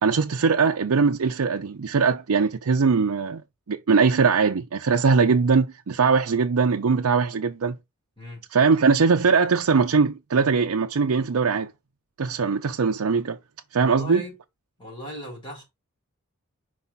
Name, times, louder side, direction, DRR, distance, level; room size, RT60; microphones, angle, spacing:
voice 1, 0.0-3.4 3.7-7.8 8.5-11.7 12.2-13.4 13.7-14.2, right 5 dB, 80° right, 0.5 m, -21 dB
voice 2, 13.8-14.4 14.8-15.6, equal, 20° left, 4.0 m, -37 dB
5.5 x 4.9 x 3.9 m
head